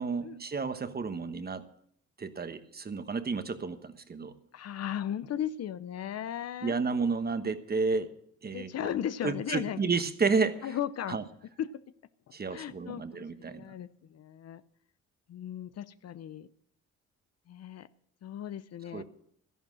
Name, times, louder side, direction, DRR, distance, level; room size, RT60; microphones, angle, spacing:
voice 1, 0.0-1.6 2.2-4.3 6.6-8.9 9.2-10.6 11.1-11.2 12.3-13.6 18.9-19.0, right 4 dB, 30° right, 10 dB, 1.3 m, -31 dB
voice 2, 4.5-6.7 7.4-7.5 8.5-9.8 10.6-11.2 11.6-11.8 12.3-14.6 15.3-16.5 17.5-17.9 18.2-19.0, left 10 dB, 55° left, 15 dB, 0.7 m, -36 dB
13.0 x 11.0 x 6.3 m, 0.68 s
cardioid pair, 90°, 30 cm